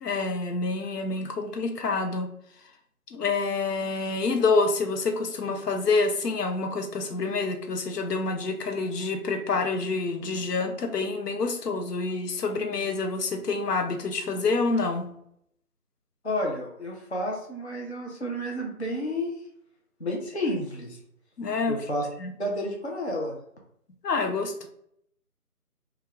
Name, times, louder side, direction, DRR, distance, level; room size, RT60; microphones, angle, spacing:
voice 1, 0.0-2.3 3.1-15.1 21.4-21.8 22.2-22.3 24.0-24.7, left 3 dB, 90° left, 5 dB, 0.6 m, -27 dB
voice 2, 16.2-19.3 20.0-21.0 21.7-22.1 22.4-23.3, left 1 dB, 50° left, -1 dB, 0.4 m, -30 dB
2.3 x 2.2 x 3.3 m, 0.71 s
figure-of-eight pair, 175°, 46 cm